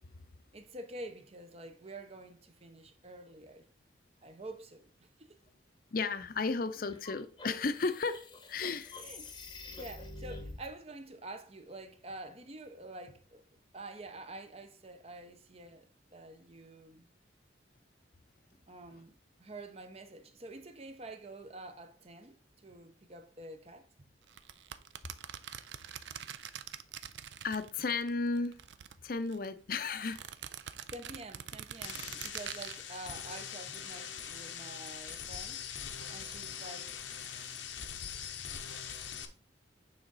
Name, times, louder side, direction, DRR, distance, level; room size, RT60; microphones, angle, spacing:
voice 1, 0.5-3.6 4.2-5.4 8.6-9.3 9.8-13.4 13.7-17.0 18.7-19.1 19.4-23.9 30.9-35.6 36.1-37.4, right 2 dB, 35° right, 0.7 m, -48 dB
voice 2, 5.9-9.0 26.0-26.2 27.4-28.6 29.0-30.2, left 4 dB, 50° left, 0.6 m, -34 dB
sound 1, 6.9-10.7, left 2 dB, 25° left, 0.8 m, -47 dB
sound 2, 24.3-28.1 28.4-29.5 30.0-32.8, right 9 dB, 75° right, 0.5 m, -44 dB
sound 3, 31.8-39.3, left 8 dB, 85° left, 0.8 m, -42 dB
8.9 x 3.6 x 4.0 m
head